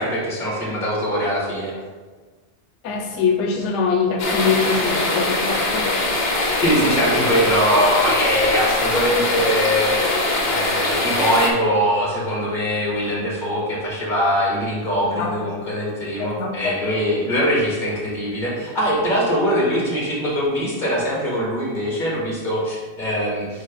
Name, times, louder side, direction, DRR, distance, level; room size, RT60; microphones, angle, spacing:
voice 1, 0.0-1.7 6.6-10.1 10.5-23.6, equal, 45° left, -4 dB, 2.1 m, -22 dB
voice 2, 2.8-5.9 15.2-15.6 16.2-16.7, left 5 dB, 90° left, 3 dB, 0.9 m, -23 dB
sound 1, 4.2-11.5, left 2 dB, 60° left, 1.3 m, -22 dB
9.3 x 3.1 x 3.9 m, 1.4 s
omnidirectional pair, 1.2 m